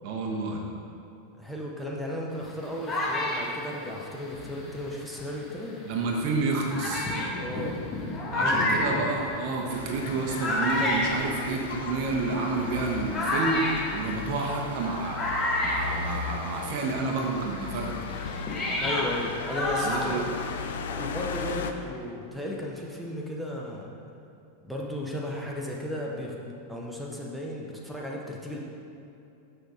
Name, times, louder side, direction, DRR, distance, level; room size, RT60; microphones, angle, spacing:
voice 1, 0.0-0.6 5.8-7.1 8.3-15.2 15.6-18.0 19.8-20.3, right 3 dB, 45° right, 0 dB, 0.9 m, -29 dB
voice 2, 1.4-5.8 7.4-7.8 8.3-9.1 14.2-14.4 18.8-20.3 20.9-23.9 24.6-28.6, left 1 dB, ahead, -3 dB, 0.9 m, -35 dB
sound 1, 2.4-5.4 6.1-6.2 6.7-16.7 17.0-20.8, left 1 dB, 25° left, 1.3 m, -31 dB
sound 2, 9.7-21.7, left 6 dB, 60° left, 0.4 m, -37 dB
6.7 x 6.4 x 3.7 m, 2.7 s
figure-of-eight pair, 90°, 0 cm